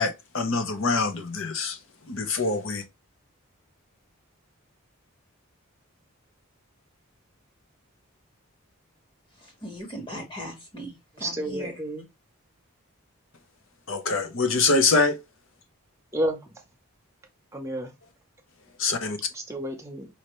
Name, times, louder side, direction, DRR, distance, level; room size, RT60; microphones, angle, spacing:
voice 1, 0.0-1.8 2.1-2.8 13.9-15.2 18.8-19.2, left 3 dB, 60° left, 0.8 m, -24 dB
voice 2, 9.3-11.8, equal, 20° left, 1.5 m, -39 dB
voice 3, 11.2-12.0 16.1-16.4 17.5-17.9 19.3-20.1, right 1 dB, 15° right, 0.8 m, -30 dB
5.4 x 2.8 x 3.1 m
head